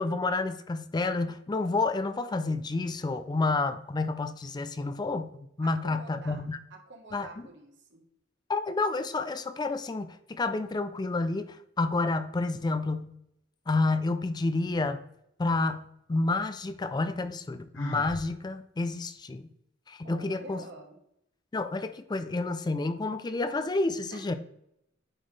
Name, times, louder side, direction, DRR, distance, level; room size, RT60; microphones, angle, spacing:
voice 1, 0.0-5.3 5.6-6.6 7.1-7.5 8.5-13.1 13.7-15.0 15.4-19.5 19.9-20.6 21.5-24.3, left 3 dB, 20° left, 11 dB, 0.4 m, -29 dB
voice 2, 5.6-6.4 6.7-8.0 20.0-21.0 24.1-24.3, right 2 dB, 65° right, 3 dB, 1.3 m, -48 dB
Sigh, 17.7-18.3, left 1 dB, 75° left, 1.5 m, -36 dB
9.0 x 4.0 x 3.2 m, 0.77 s
head